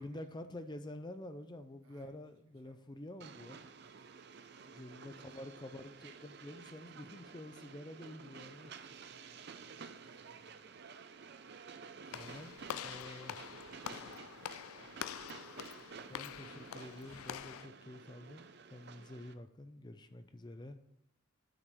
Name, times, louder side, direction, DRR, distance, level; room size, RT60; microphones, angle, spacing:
voice 1, 0.0-3.6 4.7-8.9 12.1-13.3 16.1-20.8, left 1 dB, 20° left, 9 dB, 0.5 m, -49 dB
voice 2, 1.8-3.0 3.8-5.0 8.7-10.8 11.9-15.6 15.8-16.9 18.9-19.3, right 3 dB, 85° right, 2 dB, 1.7 m, -66 dB
Train, 3.2-19.3, right 5 dB, 55° right, 0.6 m, -52 dB
Walk footsteps / Slam, 12.1-17.7, left 10 dB, 90° left, 0.3 m, -46 dB
8.8 x 4.8 x 6.8 m, 0.74 s
head